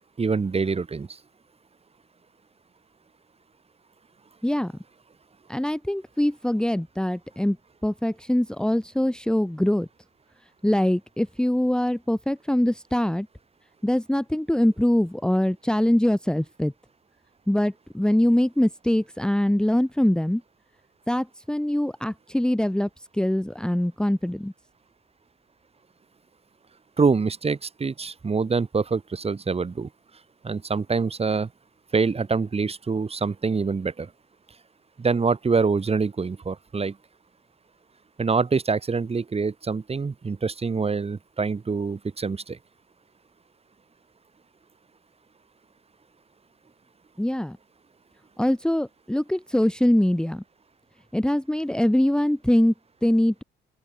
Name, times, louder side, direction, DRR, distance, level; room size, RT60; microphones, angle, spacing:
voice 1, 0.2-1.1 27.0-29.9 30.4-31.5 31.9-34.1 35.0-36.9 38.2-42.6, right 4 dB, 30° right, 2.6 m, -25 dB
voice 2, 5.5-7.6 7.8-9.9 10.6-13.3 13.8-16.7 17.5-20.4 21.1-24.5 47.2-47.6 48.4-50.4 51.1-52.7 53.0-53.4, left 1 dB, 5° left, 1.4 m, -23 dB
open air
cardioid pair, 90°, 20 cm